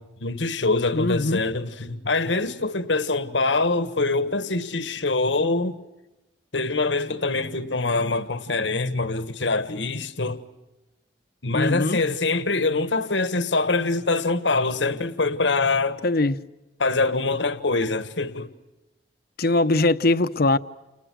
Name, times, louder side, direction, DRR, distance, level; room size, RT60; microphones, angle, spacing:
voice 1, 0.0-5.8 6.5-10.4 11.4-16.0 16.8-18.5, left 3 dB, 85° left, 1.6 m, -24 dB
voice 2, 0.9-1.4 11.5-12.0 16.0-16.4 19.4-20.6, left 2 dB, 60° left, 0.9 m, -21 dB
30.0 x 29.5 x 6.3 m
head